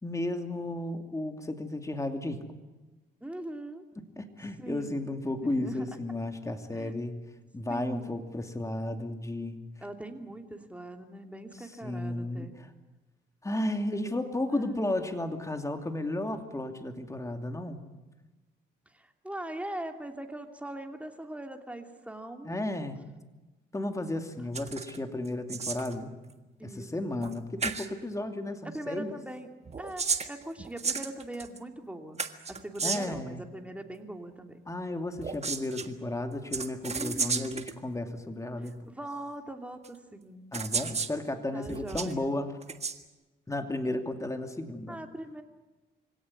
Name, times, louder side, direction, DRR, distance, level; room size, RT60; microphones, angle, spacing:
voice 1, 0.0-2.4 4.2-7.2 7.5-9.6 11.8-12.5 13.4-17.9 22.4-23.0 23.7-26.1 26.6-29.1 32.8-33.5 34.7-38.8 40.5-42.6 43.5-45.0, left 1 dB, 15° left, 6 dB, 2.7 m, -33 dB
voice 2, 3.2-3.8 4.6-4.9 5.4-5.9 6.7-7.0 7.7-8.2 9.8-12.5 14.5-15.0 18.9-22.6 26.6-26.9 28.6-29.5 29.8-32.2 32.5-34.6 36.9-37.6 38.6-40.5 41.5-42.3 44.9-45.4, right 1 dB, 5° right, 4 dB, 2.9 m, -41 dB
sound 1, 24.5-25.0 25.3-26.0 27.2-27.3 27.6-27.9 29.7-31.6 32.2-33.2 35.2-35.9 36.5-37.7 38.7-38.8 39.8-39.9 40.5-41.2 41.7-42.1 42.6-43.0, right 5 dB, 35° right, 1.6 m, -33 dB
24.5 x 17.5 x 9.9 m, 1.1 s
cardioid pair, 90°, 20 cm